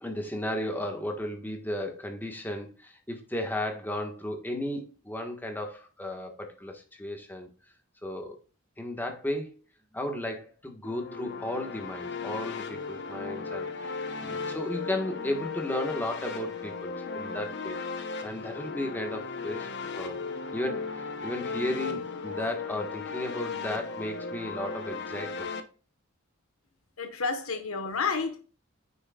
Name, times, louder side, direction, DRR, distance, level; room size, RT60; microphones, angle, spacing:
voice 1, 0.0-7.5 8.0-8.4 8.8-9.5 9.9-17.8 18.2-19.7 20.0-20.2 20.5-25.5, left 1 dB, 10° left, 1.5 m, -34 dB
sound 1, 10.8-25.6, left 4 dB, 55° left, 0.9 m, -36 dB
voice 2, 27.0-28.4, left 4 dB, 80° left, 1.3 m, -30 dB
9.4 x 6.4 x 2.4 m
head